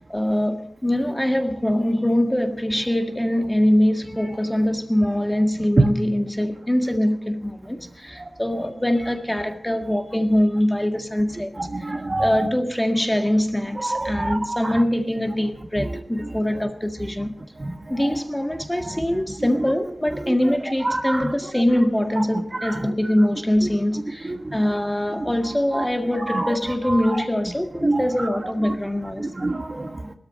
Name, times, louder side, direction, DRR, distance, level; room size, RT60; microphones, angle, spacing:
voice 1, 0.0-11.5 11.8-11.9 12.2-17.3 17.9-29.3, left 1 dB, 10° left, 1.8 m, -23 dB
voice 2, 11.6-12.5 13.8-14.8 15.8-16.0 17.6-18.2 18.8-19.7 20.1-20.6 20.8-21.6 22.2-22.3 22.5-22.9 23.6-23.7 24.2-24.7 25.2-25.3 25.7-25.9 26.1-27.2 27.8-28.8 29.2-30.2, right 2 dB, 35° right, 1.5 m, -27 dB
20.5 x 13.0 x 5.4 m
wide cardioid pair, 90°, 0 cm